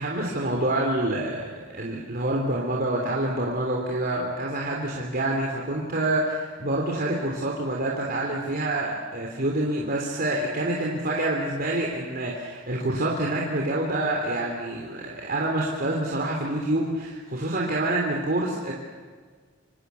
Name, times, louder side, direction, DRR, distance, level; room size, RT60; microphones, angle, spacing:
voice 1, 0.0-18.7, right 1 dB, 50° right, -1 dB, 3.5 m, -27 dB
28.0 x 25.0 x 7.1 m, 1.5 s
head